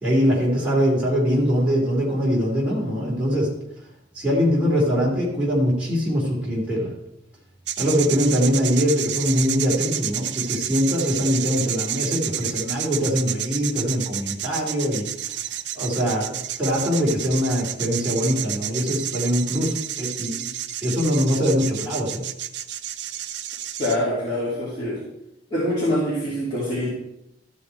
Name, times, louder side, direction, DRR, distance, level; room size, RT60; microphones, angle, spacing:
voice 1, 0.0-3.5 4.1-6.9 7.8-15.1 15.7-20.5 20.8-22.2, equal, 5° right, -7 dB, 2.8 m, -22 dB
sound 1, 7.7-24.0, right 11 dB, 65° right, 0.5 m, -30 dB
voice 2, 23.8-25.0 25.5-26.9, left 1 dB, 25° left, -10 dB, 2.9 m, -24 dB
13.0 x 5.7 x 4.6 m, 0.84 s
head